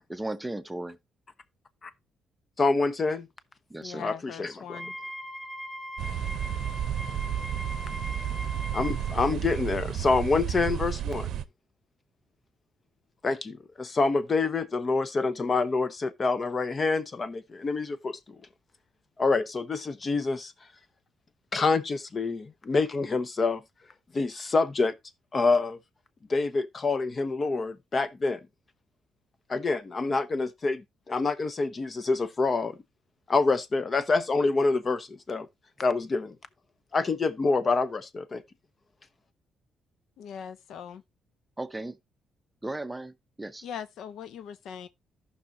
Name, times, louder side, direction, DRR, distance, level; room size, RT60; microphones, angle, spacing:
voice 1, 0.1-1.0 3.7-4.1 41.6-42.0 42.6-43.7, right 2 dB, 10° right, 0.7 m, -36 dB
voice 2, 2.6-3.3 4.0-4.8 8.7-11.3 13.2-18.4 19.2-20.5 21.5-23.6 24.1-24.9 25.3-25.8 26.3-28.4 29.5-32.8 33.3-35.5 35.8-36.4 36.9-38.4, left 3 dB, 35° left, 0.8 m, -27 dB
voice 3, 3.8-5.0 40.2-41.0 43.6-44.9, left 8 dB, 75° left, 0.5 m, -40 dB
Wind instrument woodwind instrument, 4.6-9.2, equal, 20° left, 2.6 m, -40 dB
sound 1, 6.0-11.4, right 10 dB, 70° right, 0.6 m, -32 dB
14.5 x 5.6 x 2.6 m
cardioid pair, 90°, 0 cm